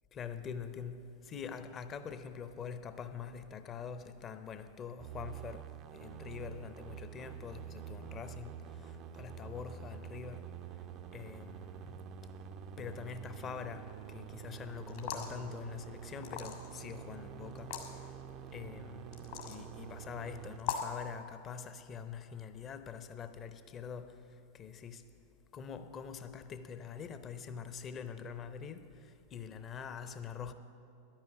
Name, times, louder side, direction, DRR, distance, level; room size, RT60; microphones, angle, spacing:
voice 1, 0.1-10.8 11.1-12.0 12.8-18.1 18.5-25.1 25.5-30.5, left 7 dB, 25° left, 0.7 m, -45 dB
sound 1, 5.0-20.6, right 8 dB, 35° right, 0.4 m, -47 dB
sound 2, 14.9-15.4 16.2-16.8 17.6-17.9 19.1-19.6 20.6-21.0, left 9 dB, 55° left, 1.5 m, -38 dB
10.5 x 8.9 x 8.1 m
figure-of-eight pair, 90°, 0 cm